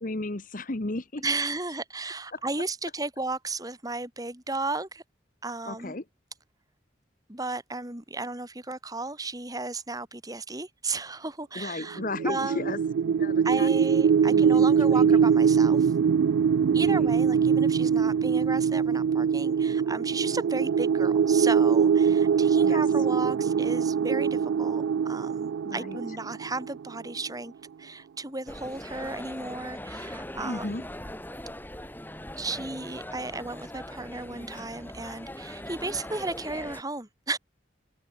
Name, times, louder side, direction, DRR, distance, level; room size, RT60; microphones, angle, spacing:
voice 1, 0.0-1.2 2.3-2.4 5.7-6.0 11.5-12.8 13.0-13.7 14.2-15.3 16.9-17.1 22.6-22.8 25.6-26.0 30.4-30.8, left 2 dB, 45° left, 1.2 m, -34 dB
voice 2, 1.2-5.0 5.4-5.9 7.3-12.7 13.4-15.9 16.7-27.5 27.8-30.9 32.4-37.4, right 3 dB, 20° right, 3.2 m, -34 dB
sound 1, 12.0-27.0, right 7 dB, 85° right, 0.3 m, -23 dB
sound 2, 28.5-36.8, left 1 dB, 10° left, 5.5 m, -40 dB
open air
head